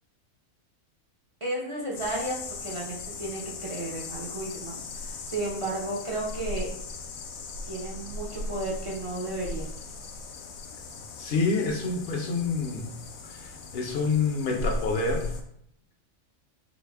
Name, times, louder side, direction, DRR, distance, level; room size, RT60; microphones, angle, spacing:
voice 1, 1.4-6.7 7.6-9.7, right 2 dB, 40° right, -3 dB, 0.4 m, -33 dB
sound 1, 1.9-15.4, left 2 dB, 80° left, 1.0 m, -38 dB
voice 2, 11.2-12.9 13.2-15.3, left 4 dB, 60° left, 1 dB, 0.7 m, -28 dB
3.9 x 2.0 x 3.3 m, 0.72 s
omnidirectional pair, 1.4 m